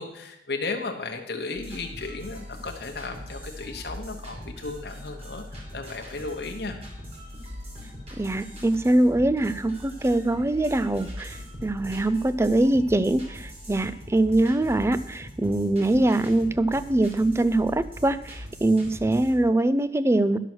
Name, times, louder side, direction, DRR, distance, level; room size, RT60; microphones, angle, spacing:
voice 1, 0.0-5.4 5.7-6.8, left 3 dB, 70° left, 2 dB, 1.0 m, -34 dB
sound 1, 1.5-19.4, equal, 35° right, 2.5 m, -41 dB
voice 2, 8.2-20.4, right 1 dB, 15° right, 15 dB, 0.3 m, -23 dB
11.0 x 6.2 x 6.1 m, 0.83 s
head